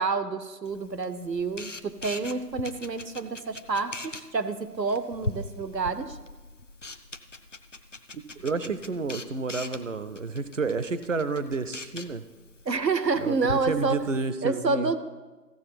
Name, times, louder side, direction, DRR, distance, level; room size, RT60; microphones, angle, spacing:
voice 1, 0.0-6.2 12.7-14.0 14.4-15.0, right 4 dB, 85° right, 11 dB, 0.9 m, -28 dB
Camera, 0.6-14.3, left 2 dB, 50° left, 0.5 m, -41 dB
voice 2, 8.1-12.2 13.2-14.9, right 3 dB, 50° right, 12 dB, 0.6 m, -30 dB
14.5 x 7.4 x 5.9 m, 1.3 s
figure-of-eight pair, 165°, 49 cm